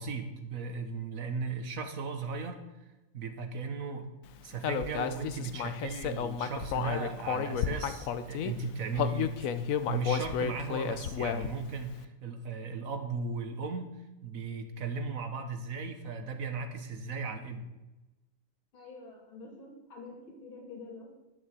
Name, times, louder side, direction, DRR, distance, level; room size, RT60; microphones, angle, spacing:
voice 1, 0.0-2.6 3.1-4.1 4.4-9.5 9.9-14.0 14.2-17.7, right 4 dB, 50° right, 6 dB, 1.5 m, -36 dB
Human voice, 4.6-8.5 8.9-11.7, left 8 dB, 65° left, 0.8 m, -32 dB
voice 2, 18.7-20.2 20.4-21.1, left 3 dB, 85° left, -1 dB, 3.7 m, -47 dB
11.5 x 7.0 x 7.6 m, 1.1 s
omnidirectional pair, 2.2 m